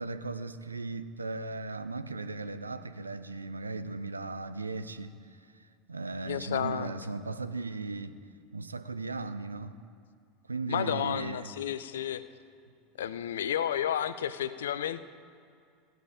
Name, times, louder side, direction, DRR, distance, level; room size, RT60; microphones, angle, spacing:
voice 1, 0.0-9.8 10.4-11.5 12.7-12.8, right 3 dB, 85° right, 0.5 m, -37 dB
voice 2, 6.3-6.9 10.7-12.2 13.0-15.0, left 10 dB, 70° left, 0.5 m, -31 dB
16.5 x 9.2 x 4.9 m
figure-of-eight pair, 80°, 0 cm